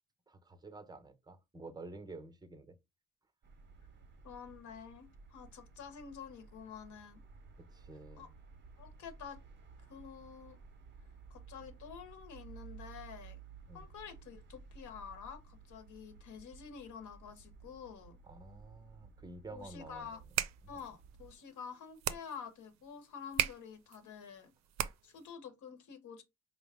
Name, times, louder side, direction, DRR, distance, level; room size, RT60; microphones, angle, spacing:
voice 1, 0.3-2.8 7.7-8.3 13.7-13.9 18.3-20.2 20.6-20.8 24.8-24.9, right 3 dB, 15° right, 0.8 m, -50 dB
sound 1, 3.4-21.3, right 5 dB, 40° right, 0.8 m, -56 dB
voice 2, 4.2-7.2 8.2-8.3 8.8-9.4 9.9-10.6 11.3-13.4 13.7-18.2 19.5-20.2 20.7-24.5 25.0-26.2, left 7 dB, 75° left, 1.0 m, -49 dB
sound 2, 20.1-25.3, right 11 dB, 65° right, 0.5 m, -39 dB
4.7 x 2.1 x 3.5 m
cardioid pair, 90°, 30 cm